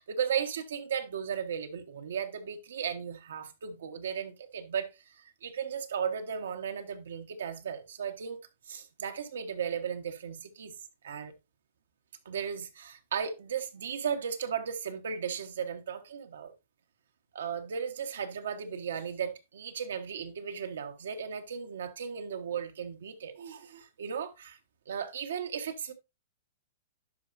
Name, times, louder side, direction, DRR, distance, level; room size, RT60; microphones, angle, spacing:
voice 1, 0.0-8.4 8.7-10.7 11.0-11.3 12.2-16.5 17.3-24.6 24.9-25.9, right 7 dB, 85° right, 1.5 m, -36 dB
11.5 x 5.2 x 2.7 m
hypercardioid pair, 150°, 0 cm